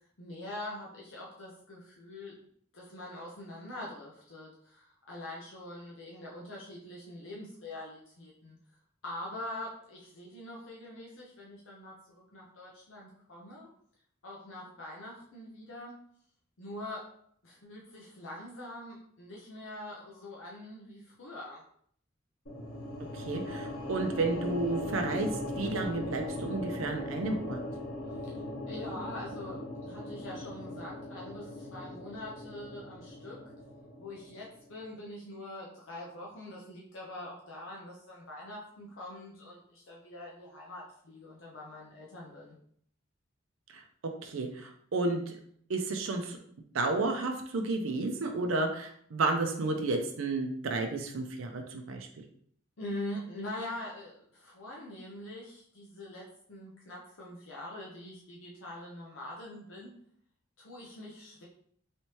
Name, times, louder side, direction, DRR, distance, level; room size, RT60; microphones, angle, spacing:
voice 1, 0.2-2.4 2.7-8.6 9.0-13.7 14.2-16.0 16.6-17.1 17.4-21.6 28.2-28.3 28.7-33.4 34.0-42.5 52.8-59.9 60.6-61.4, left 1 dB, 75° left, -4 dB, 0.7 m, -44 dB
sound 1, 22.5-34.7, left 1 dB, 90° left, 1.4 m, -39 dB
voice 2, 23.1-25.3 25.6-27.6 43.7-43.8 44.2-45.3 45.7-46.4 46.7-52.1, right 3 dB, 80° right, 3 dB, 0.5 m, -32 dB
3.2 x 3.0 x 2.9 m, 0.63 s
head